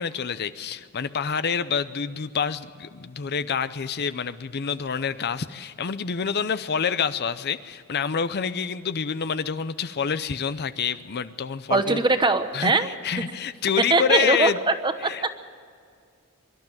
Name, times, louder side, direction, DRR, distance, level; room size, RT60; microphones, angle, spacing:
voice 1, 0.0-12.0 12.5-14.6 15.0-15.4, left 6 dB, 45° left, 13 dB, 0.6 m, -27 dB
voice 2, 11.7-12.9 13.9-14.5 14.8-15.4, right 3 dB, 20° right, 9 dB, 1.0 m, -21 dB
23.5 x 12.0 x 9.0 m, 2.2 s
head